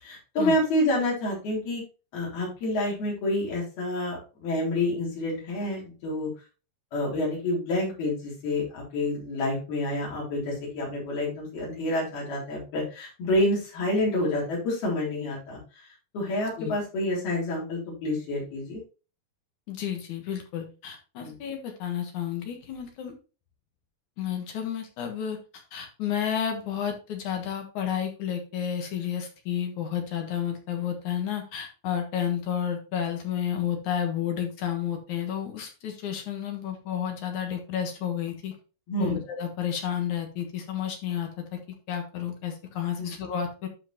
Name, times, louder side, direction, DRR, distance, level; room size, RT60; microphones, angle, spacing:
voice 1, 0.0-1.8 2.1-6.3 6.9-15.6 16.1-18.8 21.2-21.3 38.9-39.2 43.0-43.1, left 1 dB, 90° left, -5 dB, 5.6 m, -28 dB
voice 2, 19.7-23.1 24.2-25.4 25.7-38.5 39.0-41.6 41.9-43.7, left 9 dB, 60° left, 4 dB, 2.5 m, -31 dB
12.0 x 5.0 x 3.0 m, 0.33 s
omnidirectional pair, 4.3 m